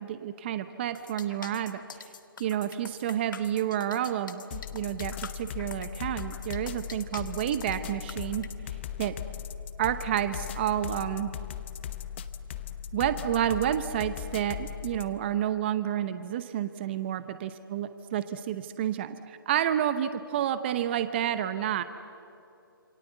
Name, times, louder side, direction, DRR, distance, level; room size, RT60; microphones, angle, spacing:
voice 1, 0.0-1.8 2.4-8.4 9.0-9.1 9.8-11.3 12.9-21.8, right 10 dB, 30° right, 11 dB, 0.8 m, -30 dB
sound 1, 0.9-8.5, left 6 dB, 55° left, 1.6 m, -45 dB
sound 2, 4.5-15.2, left 10 dB, 30° left, 0.9 m, -38 dB
27.5 x 26.0 x 8.1 m, 2.8 s
hypercardioid pair, 160°, 12 cm